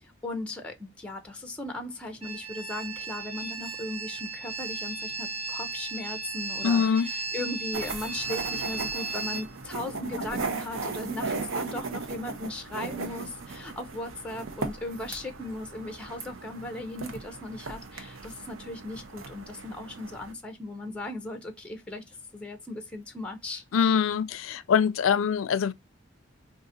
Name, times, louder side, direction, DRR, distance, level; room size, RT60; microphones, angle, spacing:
voice 1, 0.0-23.6, left 2 dB, 5° left, 0.5 m, -37 dB
sound 1, 2.2-9.4, right 4 dB, 30° right, 0.7 m, -35 dB
voice 2, 6.6-7.1 23.7-25.7, left 7 dB, 80° left, 0.4 m, -24 dB
sound 2, 7.7-20.3, right 4 dB, 80° right, 0.7 m, -37 dB
3.8 x 2.5 x 2.6 m
head